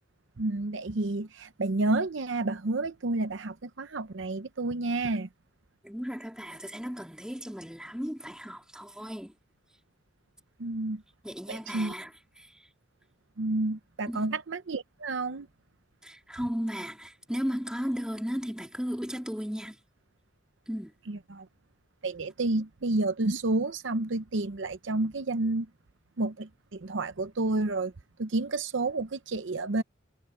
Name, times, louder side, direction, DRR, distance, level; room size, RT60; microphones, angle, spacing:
voice 1, 0.4-5.3 10.6-11.0 11.5-11.9 13.4-15.5 21.1-21.5 22.0-25.7 26.2-27.9 28.2-29.8, right 2 dB, 65° right, 0.8 m, -30 dB
voice 2, 5.8-9.3 11.2-12.1 12.4-12.7 14.1-14.3 16.0-19.8 20.7-20.9, equal, 5° right, 3.7 m, -35 dB
head